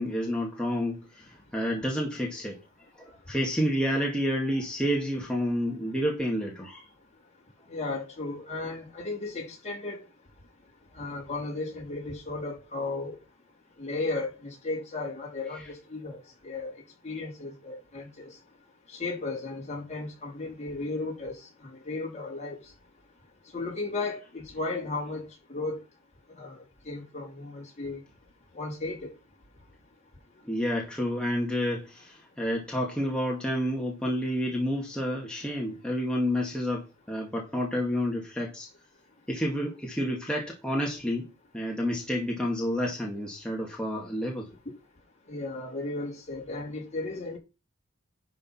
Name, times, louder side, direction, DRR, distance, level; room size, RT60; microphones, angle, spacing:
voice 1, 0.0-2.6 3.0-6.9 15.6-15.7 30.4-38.7 39.3-41.3 41.5-44.5, equal, 5° left, 2.1 m, -29 dB
voice 2, 7.7-10.0 10.9-13.2 13.8-18.3 18.9-22.6 23.5-25.8 26.4-26.6 26.8-28.0 28.5-29.1 45.3-47.4, left 3 dB, 35° left, 4.1 m, -35 dB
11.0 x 5.2 x 5.7 m
head